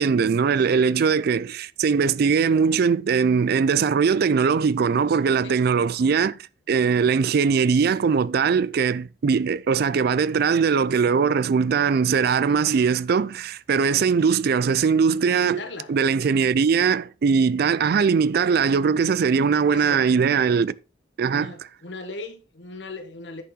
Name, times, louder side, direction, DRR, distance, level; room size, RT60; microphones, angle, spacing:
voice 1, 0.0-6.4 6.7-20.7 21.2-21.5, right 6 dB, 60° right, 0.4 m, -21 dB
voice 2, 0.6-0.9 5.4-5.6 15.3-15.9 19.7-20.0 21.3-23.4, left 3 dB, 75° left, 1.4 m, -38 dB
9.7 x 5.6 x 3.9 m
head